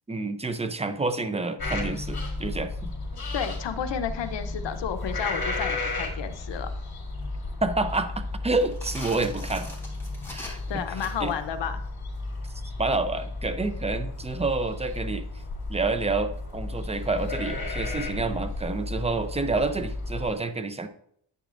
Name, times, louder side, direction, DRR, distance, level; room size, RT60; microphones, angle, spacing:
voice 1, 0.1-2.9 7.6-9.7 10.3-10.8 11.2-11.3 12.8-15.3 15.7-20.9, right 3 dB, 15° right, 9 dB, 0.6 m, -28 dB
sound 1, 1.6-20.3, left 2 dB, 55° left, 3.1 m, -33 dB
voice 2, 3.3-6.7 10.4-11.8, left 8 dB, 75° left, 9 dB, 0.8 m, -32 dB
sound 2, 8.5-11.4, left 1 dB, 5° left, 3.7 m, -42 dB
10.5 x 8.6 x 2.5 m, 0.68 s
cardioid pair, 95°, 43 cm